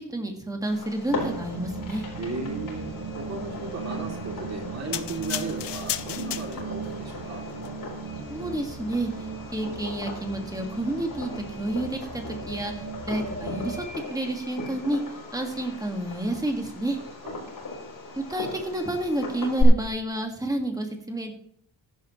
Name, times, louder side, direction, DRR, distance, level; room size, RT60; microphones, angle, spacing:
voice 1, 0.0-2.0 8.3-9.1 9.5-12.7 13.0-13.8 14.1-15.0 15.3-17.0 18.3-21.3, right 1 dB, 10° right, 3 dB, 1.8 m, -30 dB
Fireworks, 0.6-19.6, left 4 dB, 45° left, 4.4 m, -38 dB
sound 1, 1.1-13.8, right 4 dB, 60° right, 3.9 m, -37 dB
voice 2, 2.2-2.9 3.1-7.4 17.2-17.5, right 3 dB, 35° right, 1 dB, 2.8 m, -35 dB
sound 2, 4.9-6.9 7.5-7.7, left 11 dB, 70° left, 0.8 m, -33 dB
15.0 x 11.0 x 3.1 m, 0.63 s
wide cardioid pair, 175°, 43 cm